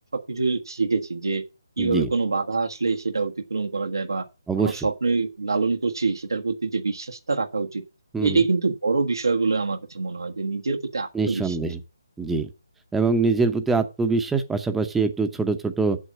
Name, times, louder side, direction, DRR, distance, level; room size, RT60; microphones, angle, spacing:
voice 1, 0.1-1.4 1.8-4.2 4.6-7.8 8.2-11.6, right 3 dB, 90° right, 1.4 m, -25 dB
voice 2, 1.8-2.1 4.5-4.9 8.1-8.4 11.1-11.8 12.2-12.5 12.9-16.0, right 4 dB, 5° right, 0.7 m, -24 dB
8.0 x 7.3 x 7.3 m
hypercardioid pair, 160°, 2 cm